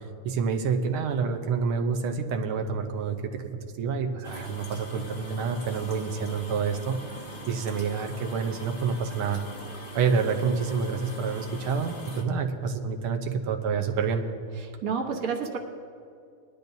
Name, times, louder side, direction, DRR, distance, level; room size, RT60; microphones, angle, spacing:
voice 1, 0.2-3.4 3.8-7.0 7.5-9.4 10.0-14.2, right 5 dB, 80° right, 4 dB, 1.7 m, -28 dB
sound 1, 4.2-12.2, left 1 dB, 30° left, 1.1 m, -43 dB
voice 2, 14.6-15.6, right 5 dB, 50° right, 2 dB, 1.3 m, -30 dB
20.0 x 12.0 x 2.7 m, 2.5 s
omnidirectional pair, 2.3 m